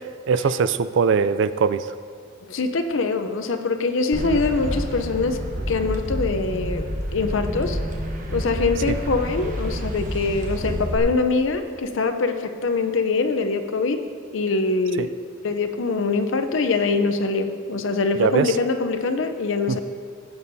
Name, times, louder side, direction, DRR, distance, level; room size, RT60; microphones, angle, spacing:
voice 1, 0.3-1.9 8.8-9.0 15.0-15.1 18.2-18.6 19.7-19.8, right 5 dB, 60° right, 14 dB, 0.4 m, -21 dB
voice 2, 2.4-5.4 5.7-6.8 7.1-7.8 8.3-14.0 14.3-15.1 15.4-19.8, left 3 dB, 65° left, 8 dB, 0.6 m, -23 dB
sound 1, 4.1-11.0, equal, 40° right, 1.1 m, -29 dB
16.0 x 8.6 x 2.7 m, 2.1 s
head